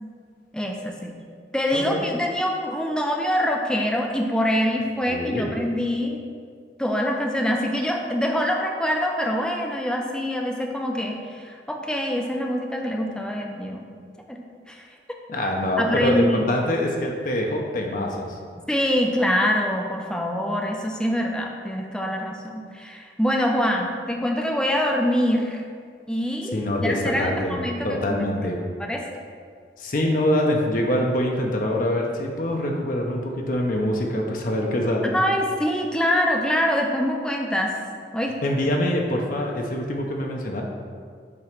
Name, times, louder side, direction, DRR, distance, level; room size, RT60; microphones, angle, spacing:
voice 1, 0.5-1.1 1.5-6.2 6.8-13.9 14.3-14.9 15.8-16.6 18.7-25.6 26.1-28.3 28.8-29.1 35.1-37.7 38.1-38.3, equal, 5° left, 1 dB, 0.6 m, -25 dB
voice 2, 1.7-2.0 5.1-5.5 15.3-18.4 26.5-28.6 29.8-35.1 38.4-40.6, left 1 dB, 50° left, 0 dB, 0.7 m, -24 dB
7.6 x 3.0 x 5.9 m, 2.1 s
head